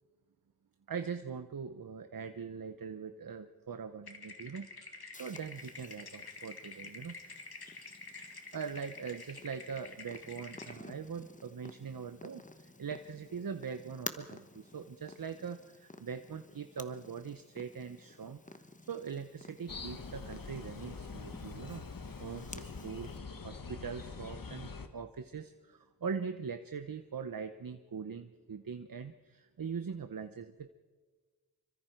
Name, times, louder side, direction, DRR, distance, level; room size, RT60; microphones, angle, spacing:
voice 1, 0.9-7.2 8.2-18.4 18.9-21.9 22.2-23.1 23.4-30.7, right 6 dB, 65° right, 9 dB, 0.9 m, -42 dB
sound 1, 4.1-10.7, left 3 dB, 80° left, 2.4 m, -49 dB
Purr, 5.1-23.2, left 2 dB, 20° left, 1.1 m, -52 dB
sound 2, 19.7-24.9, left 4 dB, 60° left, 1.6 m, -44 dB
27.0 x 24.5 x 4.6 m, 1.4 s
wide cardioid pair, 90°, 37 cm